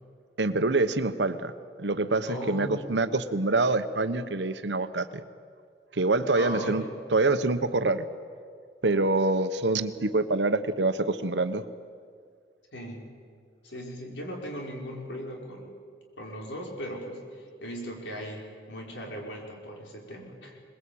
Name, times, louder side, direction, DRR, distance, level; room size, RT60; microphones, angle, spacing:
voice 1, 0.4-1.5 1.8-5.2 5.9-6.8 7.1-8.1 8.8-11.6, right 2 dB, 75° right, 11 dB, 1.1 m, -25 dB
voice 2, 2.2-2.8 6.3-6.8 12.7-13.0 13.6-15.7 16.2-20.6, equal, 85° left, 0 dB, 5.0 m, -38 dB
22.0 x 21.0 x 8.7 m, 2.1 s
head